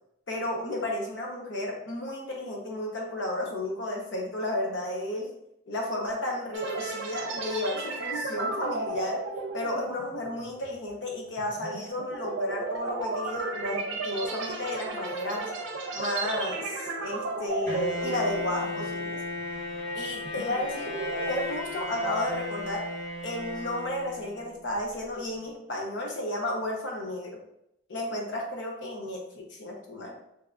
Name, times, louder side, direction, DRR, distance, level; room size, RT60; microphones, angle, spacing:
voice 1, 0.3-5.3 5.7-9.2 9.5-15.5 15.9-19.2 19.9-20.9 21.3-22.9 23.2-27.4 27.9-30.2, left 1 dB, 80° left, 0 dB, 0.8 m, -33 dB
sound 1, 6.5-19.1 19.4-19.6 20.1-21.4, right 3 dB, 85° right, 0.6 m, -34 dB
Bowed string instrument, 17.7-24.6, left 2 dB, 15° left, 1.0 m, -35 dB
3.5 x 2.7 x 2.3 m, 0.78 s
head